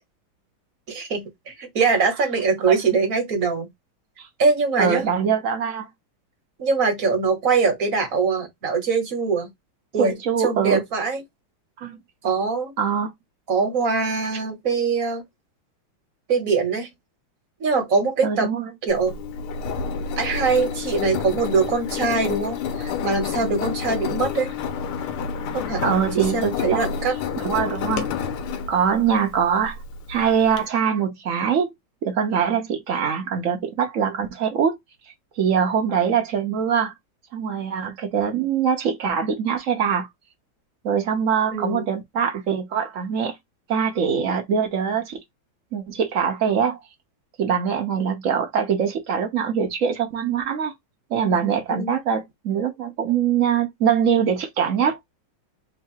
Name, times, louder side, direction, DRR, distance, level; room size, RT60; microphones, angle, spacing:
voice 1, 0.9-3.7 4.4-5.1 6.6-9.5 9.9-11.2 12.2-12.7 13.5-15.2 16.3-16.9 17.6-18.5 18.9-19.1 20.2-24.5 25.5-27.1 41.5-41.9 51.7-51.9, right 4 dB, 45° right, 1.4 m, -23 dB
voice 2, 4.8-5.9 10.0-10.8 11.8-12.0 12.8-13.1 18.2-18.7 23.4-23.6 25.8-26.9 27.4-28.1 28.7-29.8 30.1-31.7 32.0-34.8 35.4-36.9 37.3-40.1 40.8-43.4 43.7-45.2 45.7-46.8 47.4-50.7 51.1-55.0, right 7 dB, 80° right, 0.7 m, -23 dB
Engine, 18.9-30.6, left 6 dB, 85° left, 1.7 m, -29 dB
3.7 x 2.3 x 4.3 m
omnidirectional pair, 2.3 m